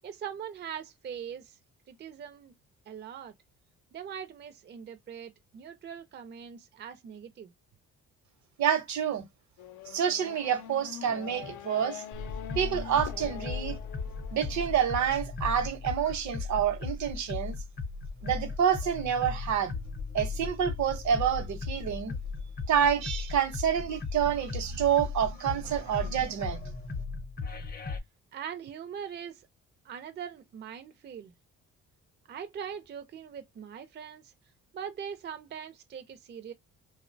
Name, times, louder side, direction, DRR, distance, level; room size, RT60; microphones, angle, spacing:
voice 1, 0.0-1.6 1.9-2.5 2.9-3.3 3.9-7.5 28.3-29.5 29.8-31.3 32.3-34.3 34.7-36.5, right 8 dB, 35° right, 0.4 m, -41 dB
voice 2, 8.6-9.3 9.9-12.0 12.6-13.8 14.3-17.6 18.2-19.7 20.1-22.1 22.7-26.6, right 8 dB, 70° right, 0.8 m, -28 dB
Race car auto racing / Accelerating revving vroom, 9.6-14.7, left 11 dB, 80° left, 0.5 m, -44 dB
sound 1, 12.1-28.0, left 4 dB, 30° left, 0.6 m, -37 dB
2.7 x 2.0 x 2.5 m
cardioid pair, 90°, 30 cm